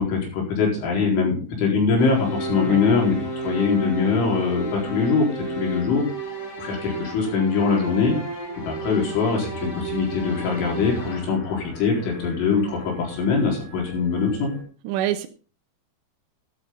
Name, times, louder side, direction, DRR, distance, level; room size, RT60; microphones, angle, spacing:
voice 1, 0.0-3.2 3.4-5.3 5.6-6.0 6.6-8.2 8.5-14.5, left 5 dB, 80° left, 0 dB, 6.7 m, -22 dB
sound 1, 2.0-11.2, right 2 dB, 30° left, 2.0 m, -33 dB
sound 2, 9.4-14.6, left 2 dB, 50° left, 7.1 m, -41 dB
voice 2, 14.8-15.3, right 12 dB, 80° right, 7 dB, 2.9 m, -25 dB
13.0 x 12.0 x 3.8 m, 0.39 s
omnidirectional pair, 5.4 m